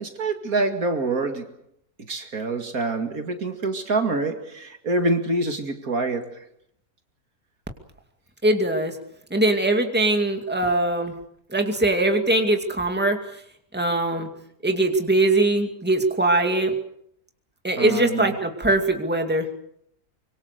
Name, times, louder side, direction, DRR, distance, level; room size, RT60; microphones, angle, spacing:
voice 1, 0.0-1.5 2.1-6.4 17.8-18.3, right 2 dB, 65° right, 6 dB, 2.6 m, -26 dB
voice 2, 8.4-9.0 9.3-11.1 11.5-13.2 13.7-14.3 14.6-16.7 17.6-19.5, right 2 dB, 5° right, 4 dB, 2.3 m, -21 dB
25.0 x 24.0 x 6.8 m, 0.71 s
omnidirectional pair, 1.7 m